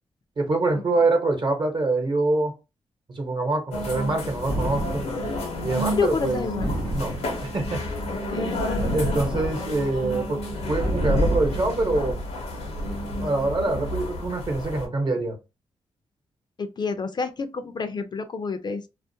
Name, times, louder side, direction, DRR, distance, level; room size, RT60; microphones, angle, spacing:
voice 1, 0.4-2.5 3.1-5.1 5.6-6.4 6.9-7.8 8.9-12.2 13.2-15.4, right 2 dB, 50° right, 0.9 m, -25 dB
sound 1, 3.7-14.9, left 1 dB, 85° left, 0.7 m, -30 dB
sound 2, 4.5-5.3 6.6-7.6 8.8-9.8 10.8-11.7, right 1 dB, 85° right, 0.8 m, -30 dB
voice 2, 5.9-6.7 8.3-8.9 16.6-18.9, left 4 dB, 45° left, 0.4 m, -29 dB
2.4 x 2.1 x 2.6 m
cardioid pair, 70°, 11 cm